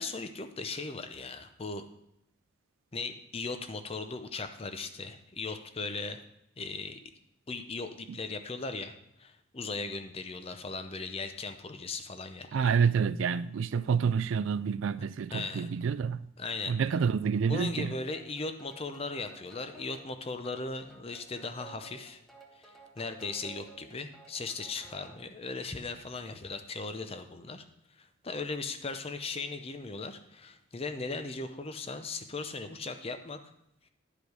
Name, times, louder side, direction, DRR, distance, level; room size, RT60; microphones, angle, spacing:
voice 1, 0.0-1.9 2.9-6.2 6.6-7.0 7.5-12.8 15.3-15.7 16.4-16.7 17.5-22.2 22.5-27.6 27.9-33.4, left 3 dB, 30° left, 0.6 m, -38 dB
voice 2, 12.5-16.2 16.7-17.9, right 6 dB, 70° right, 0.3 m, -28 dB
sound 1, 17.9-25.3, right 2 dB, ahead, 0.9 m, -55 dB
10.5 x 5.0 x 4.7 m
head